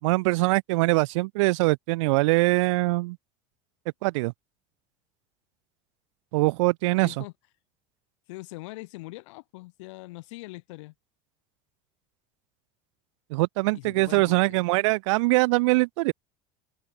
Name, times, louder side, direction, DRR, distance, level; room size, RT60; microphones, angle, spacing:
voice 1, 0.0-3.2 4.0-4.3 6.3-7.2 13.3-16.1, right 24 dB, 90° right, 0.6 m, -23 dB
voice 2, 7.0-7.3 8.3-10.9 13.7-14.6, left 22 dB, 85° left, 3.3 m, -42 dB
cardioid pair, 160°, 15 cm